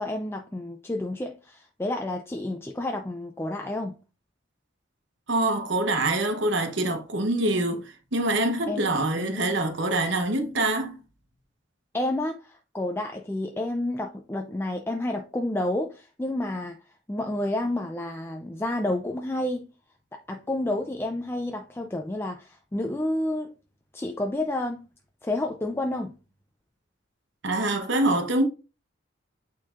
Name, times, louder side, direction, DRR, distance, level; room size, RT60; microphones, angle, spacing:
voice 1, 0.0-3.9 8.7-8.8 9.2-9.4 11.9-16.8 17.1-19.6 20.1-23.5 23.9-24.8 25.2-26.1, left 1 dB, 10° left, 0.4 m, -30 dB
voice 2, 5.3-7.8 8.1-10.9 27.4-28.4, right 2 dB, 65° right, 1.0 m, -25 dB
8.8 x 4.4 x 2.4 m
head